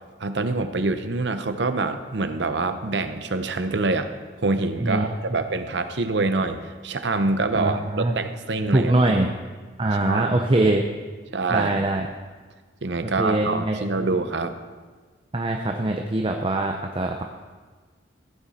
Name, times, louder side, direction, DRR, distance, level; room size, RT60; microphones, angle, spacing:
voice 1, 0.2-4.1 4.4-8.9 10.0-10.3 11.3-11.8 12.8-14.5, right 3 dB, 65° right, 9 dB, 0.8 m, -25 dB
voice 2, 7.5-8.2 8.7-9.3 9.8-10.8 11.5-12.1 13.2-14.1 15.3-17.2, right 2 dB, 30° right, 3 dB, 0.6 m, -23 dB
15.5 x 9.2 x 4.2 m, 1.4 s
head